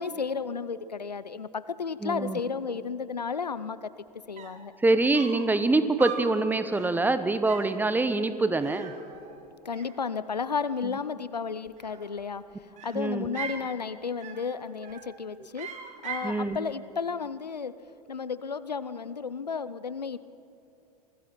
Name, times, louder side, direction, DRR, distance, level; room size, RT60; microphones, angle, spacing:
voice 1, 0.0-3.9 4.3-4.7 9.6-12.4 12.8-15.7 16.0-17.7 18.1-20.2, left 5 dB, 85° left, 16 dB, 0.7 m, -33 dB
voice 2, 2.0-2.4 4.8-8.9 12.9-13.3 16.2-16.6, right 2 dB, 10° right, 12 dB, 1.1 m, -25 dB
sound 1, 4.1-4.2 4.4-4.7 5.1-5.5 6.0-6.4 6.7-7.0 7.5-7.8 8.6-9.5 9.7-10.4 11.7-12.3 12.8-13.7 14.2-14.5 14.8-15.2 15.6-16.4, right 7 dB, 35° right, 2.3 m, -40 dB
27.0 x 20.0 x 5.9 m, 2.8 s
figure-of-eight pair, 85°, 20 cm